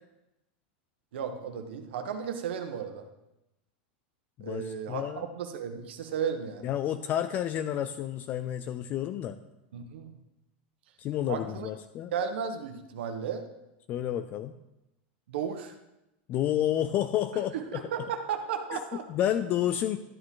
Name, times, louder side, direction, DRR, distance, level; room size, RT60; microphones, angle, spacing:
voice 1, 1.1-3.0 4.4-6.7 9.7-10.2 11.3-11.7 12.1-13.4 15.3-15.8 17.5-19.0, right 7 dB, 80° right, 6 dB, 1.3 m, -34 dB
voice 2, 4.4-5.2 6.6-9.4 11.0-12.1 13.9-14.5 16.3-17.8 18.7-18.8 19.1-20.0, left 11 dB, 30° left, 10 dB, 0.4 m, -30 dB
12.0 x 8.5 x 3.8 m, 0.93 s
supercardioid pair, 150°, 6 cm